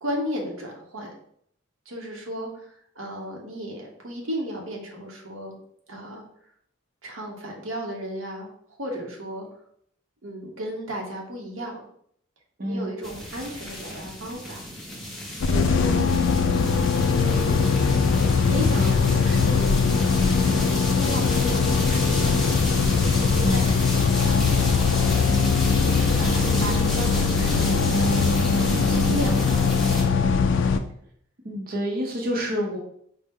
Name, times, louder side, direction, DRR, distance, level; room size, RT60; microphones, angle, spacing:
voice 1, 0.0-1.1 1.9-5.6 5.9-6.2 7.0-8.5 8.8-9.5 10.2-11.8 12.6-14.6 15.5-16.1 17.2-18.0 18.3-19.7 20.5-22.6 22.9-24.4 25.9-28.3 28.8-29.7, equal, 85° right, 0 dB, 0.9 m, -34 dB
voice 2, 12.6-12.9 15.8-16.2 23.4-23.7 25.3-25.6 26.4-26.8 31.4-32.8, equal, 50° right, -1 dB, 0.7 m, -29 dB
sound 1, 13.0-30.0, equal, ahead, 0.7 m, -33 dB
sound 2, 15.4-30.8, left 5 dB, 65° left, 0.3 m, -21 dB
4.3 x 2.1 x 3.5 m, 0.68 s
head